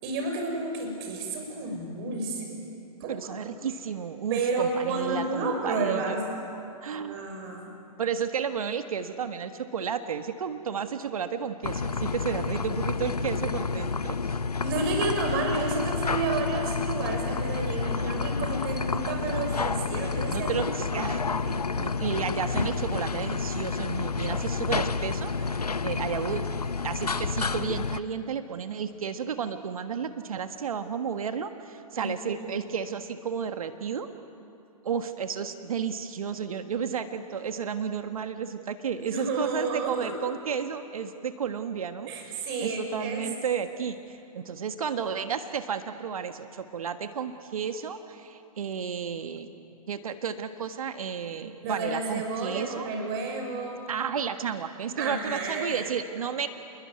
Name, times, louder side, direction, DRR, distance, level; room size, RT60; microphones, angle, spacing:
voice 1, 0.0-2.6 3.0-3.4 4.3-6.3 6.9-7.7 14.6-20.7 20.9-21.2 31.9-32.4 39.0-40.1 42.1-43.2 51.6-53.8 55.0-55.9, right 3 dB, 40° right, 3 dB, 6.2 m, -31 dB
voice 2, 3.1-6.2 6.8-7.2 8.0-14.2 17.7-18.2 20.3-26.5 26.8-34.1 34.8-42.3 42.6-49.5 49.9-52.9 53.9-56.5, right 7 dB, 65° right, 9 dB, 1.5 m, -32 dB
sound 1, 11.6-28.0, left 4 dB, 90° left, 0.9 m, -29 dB
28.0 x 22.0 x 9.5 m, 2.8 s
figure-of-eight pair, 120°, 19 cm